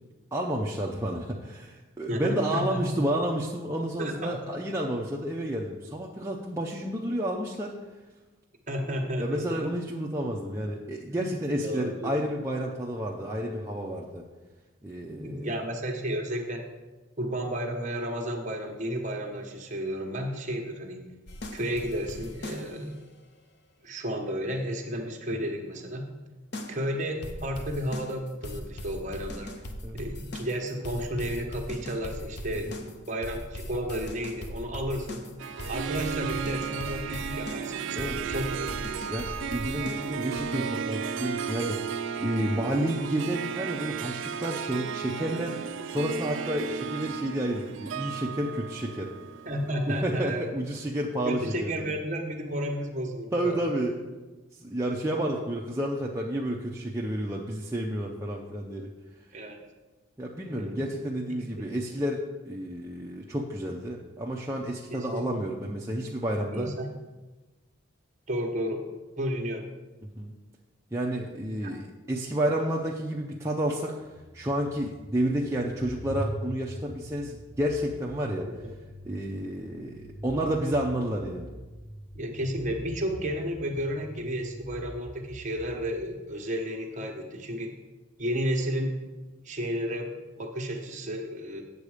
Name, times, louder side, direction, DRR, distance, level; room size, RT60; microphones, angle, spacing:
voice 1, 0.3-7.7 9.2-14.2 14.8-15.5 29.8-30.0 32.5-32.8 37.9-38.2 39.1-41.8 42.2-49.1 49.9-51.9 53.3-54.0 54.5-58.9 60.2-66.7 70.2-70.3 70.9-73.9 74.3-78.5 79.0-81.5, right 1 dB, 15° right, -2 dB, 0.6 m, -30 dB
voice 2, 2.1-3.0 4.0-4.4 8.7-9.7 11.1-11.3 11.6-12.3 15.1-16.7 17.2-21.1 21.5-23.0 23.8-26.1 26.7-29.5 29.9-35.2 35.7-39.1 42.6-42.8 49.5-50.5 51.3-53.6 59.3-59.6 60.5-60.9 61.3-61.4 64.9-65.4 66.5-66.9 68.3-68.9 69.2-69.7 71.6-71.7 78.5-78.6 82.1-87.7 88.2-89.0 89.4-91.6, equal, 35° right, 2 dB, 1.2 m, -32 dB
sound 1, 21.3-22.9 26.5-26.8 27.2-40.4, left 1 dB, 55° left, 0.8 m, -39 dB
Harp, 35.4-49.9, right 7 dB, 60° right, 0.4 m, -34 dB
sound 2, 74.0-86.1, right 1 dB, 30° left, 2.5 m, -43 dB
8.3 x 7.3 x 5.0 m, 1.2 s
head